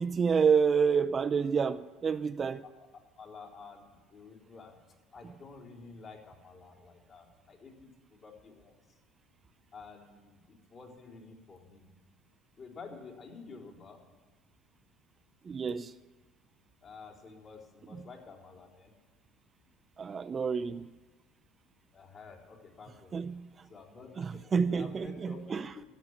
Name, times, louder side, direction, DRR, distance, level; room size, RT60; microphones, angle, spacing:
voice 1, 0.0-2.6 15.4-15.9 18.0-18.1 20.0-20.9 23.1-23.7 24.2-25.7, right 6 dB, 30° right, 0.4 m, -29 dB
voice 2, 2.6-4.8 5.1-8.8 9.7-11.9 12.6-14.0 16.8-18.9 21.9-23.2 23.7-25.8, left 4 dB, 45° left, 3.7 m, -50 dB
13.0 x 7.2 x 9.5 m
supercardioid pair, 100°, 0 cm